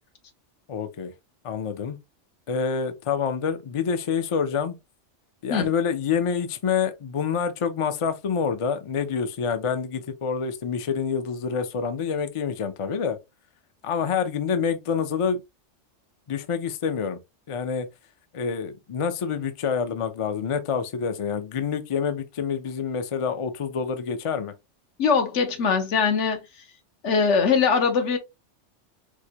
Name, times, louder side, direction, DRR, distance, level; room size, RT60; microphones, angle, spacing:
voice 1, 0.7-1.1 1.4-2.0 2.5-4.7 5.4-13.2 13.8-15.4 16.3-17.2 17.5-17.9 18.3-24.5, left 6 dB, 55° left, 0.3 m, -27 dB
voice 2, 25.0-26.4 27.0-28.2, left 5 dB, 80° left, 1.1 m, -21 dB
4.5 x 2.2 x 2.8 m
omnidirectional pair, 1.2 m